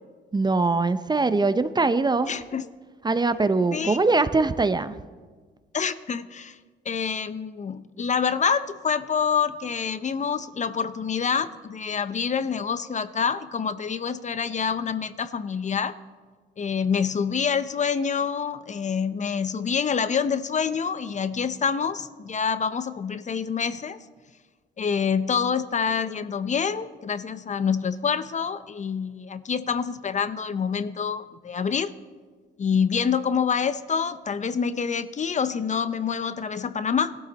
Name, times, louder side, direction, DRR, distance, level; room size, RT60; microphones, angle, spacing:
voice 1, 0.3-2.3 3.0-5.0, right 3 dB, 20° right, 13 dB, 0.6 m, -22 dB
voice 2, 2.2-2.7 3.7-4.0 5.7-6.6 6.9-15.9 16.6-24.0 24.8-31.9 32.6-37.2, left 6 dB, 35° left, 13 dB, 0.6 m, -26 dB
17.5 x 12.5 x 4.1 m, 1.5 s
cardioid pair, 90°, 20 cm